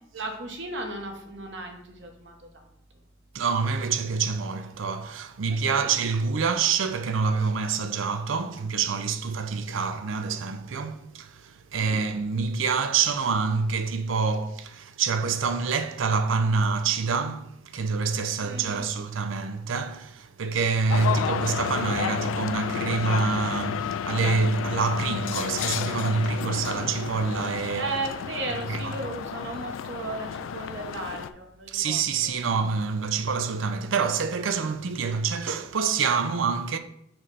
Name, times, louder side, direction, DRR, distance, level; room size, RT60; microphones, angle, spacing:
voice 1, 0.1-2.6 5.7-5.9 11.7-12.0 18.4-18.9 27.7-32.3, right 2 dB, 65° right, 1.1 m, -35 dB
voice 2, 3.3-27.9 28.7-28.9 31.7-36.8, right 5 dB, 85° right, 0.5 m, -26 dB
sound 1, 20.9-31.3, left 8 dB, 85° left, 0.3 m, -31 dB
6.0 x 3.3 x 5.3 m
head